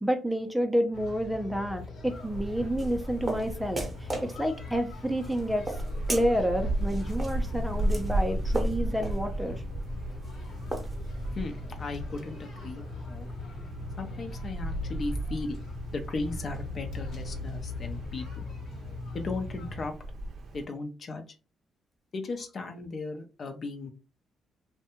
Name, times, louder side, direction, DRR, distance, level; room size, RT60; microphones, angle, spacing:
voice 1, 0.0-5.8 6.1-9.6, equal, 5° right, 0.5 m, -29 dB
sound 1, 0.9-19.9, left 3 dB, 70° left, 0.9 m, -41 dB
Wind, 2.1-20.6, right 1 dB, 65° right, 0.5 m, -36 dB
sound 2, 2.2-11.4, right 2 dB, 20° right, 0.8 m, -38 dB
voice 2, 11.3-13.3 14.0-15.6 15.9-18.4 19.1-19.9 20.5-21.2 22.1-23.9, left 3 dB, 45° left, 0.5 m, -36 dB
2.6 x 2.1 x 2.9 m
cardioid pair, 90°, 0 cm